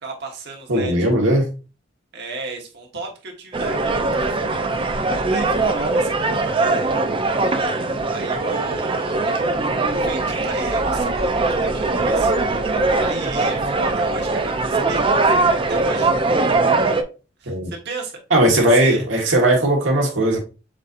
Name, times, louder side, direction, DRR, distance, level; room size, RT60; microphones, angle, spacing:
voice 1, 0.0-0.9 2.1-4.7 4.9-7.0 8.1-9.5 9.9-12.3 12.9-15.4 15.7-16.1 16.4-16.6 17.4-18.2 18.6-19.1, right 3 dB, 60° right, 1.2 m, -34 dB
voice 2, 0.7-1.5 17.5-17.7 18.3-20.4, right 1 dB, 90° right, 1.4 m, -17 dB
sound 1, 3.5-17.0, right 3 dB, 25° right, 0.5 m, -21 dB
7.4 x 2.7 x 2.5 m
head